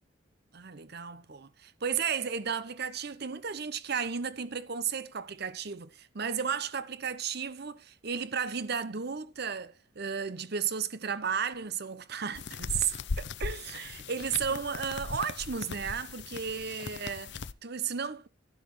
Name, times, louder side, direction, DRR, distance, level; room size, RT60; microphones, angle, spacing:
voice 1, 0.5-18.3, right 6 dB, 55° right, 0.9 m, -34 dB
sound 1, 12.3-17.5, left 4 dB, 60° left, 0.6 m, -39 dB
12.5 x 11.0 x 3.2 m
head